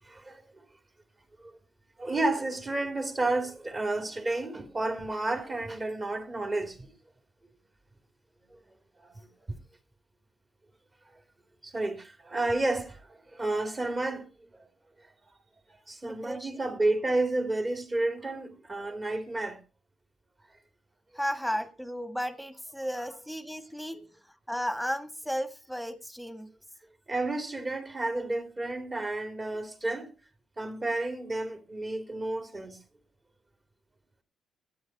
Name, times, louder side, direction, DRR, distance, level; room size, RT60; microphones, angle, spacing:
voice 1, 0.1-0.4 1.4-1.5 2.0-6.9 9.0-9.2 11.6-14.3 15.9-19.6 27.1-30.1 30.6-32.8, right 2 dB, 30° right, 3.1 m, -31 dB
voice 2, 16.0-16.5 21.1-24.0 24.5-26.5, equal, ahead, 1.7 m, -34 dB
12.5 x 9.4 x 4.8 m
cardioid pair, 90°, 0 cm